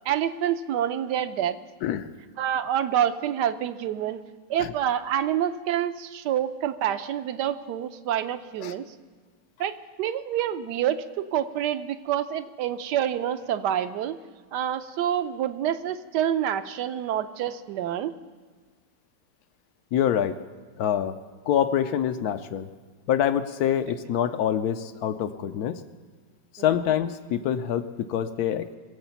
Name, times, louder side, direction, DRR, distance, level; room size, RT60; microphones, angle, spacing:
voice 1, 0.1-1.6 2.4-4.2 4.5-8.9 9.6-14.2 14.5-18.1 26.7-26.8, right 10 dB, 75° right, 11 dB, 1.2 m, -27 dB
voice 2, 19.9-20.4 20.8-21.2 21.5-22.7 23.1-25.8 26.5-28.7, left 9 dB, 70° left, 11 dB, 1.0 m, -25 dB
22.5 x 8.1 x 5.7 m, 1.5 s
omnidirectional pair, 2.0 m